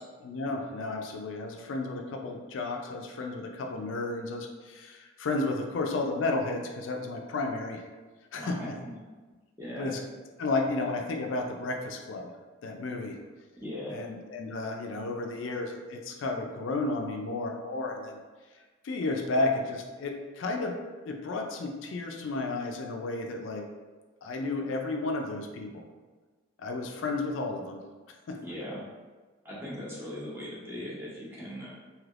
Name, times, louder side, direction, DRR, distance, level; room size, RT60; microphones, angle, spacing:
voice 1, 0.2-7.8 8.3-8.6 9.8-10.0 10.4-12.3 12.6-13.2 13.9-18.2 18.8-20.8 21.0-23.7 24.2-25.8 26.6-27.8 28.3-28.4, left 2 dB, 75° left, 3 dB, 0.4 m, -32 dB
voice 2, 8.3-8.7 9.6-9.9 13.6-14.0 28.4-28.8 29.4-31.7, left 1 dB, 10° right, -7 dB, 0.8 m, -39 dB
3.3 x 2.8 x 2.4 m, 1.3 s
head